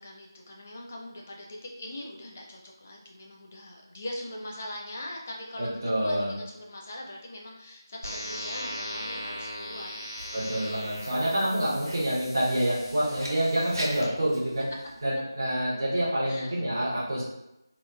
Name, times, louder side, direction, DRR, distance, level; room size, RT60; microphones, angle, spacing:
voice 1, 0.0-10.2 11.4-12.2 14.0-14.1 16.2-16.5, left 1 dB, 25° left, -1 dB, 0.3 m, -42 dB
voice 2, 5.6-6.3 10.3-14.7 15.0-17.2, right 1 dB, 40° right, -7 dB, 0.7 m, -27 dB
sound 1, 8.0-14.0, equal, 70° left, 0.7 m, -39 dB
Writing, 10.2-15.1, equal, 80° right, 0.8 m, -43 dB
2.8 x 2.1 x 2.3 m, 0.91 s
figure-of-eight pair, 165°, 2 cm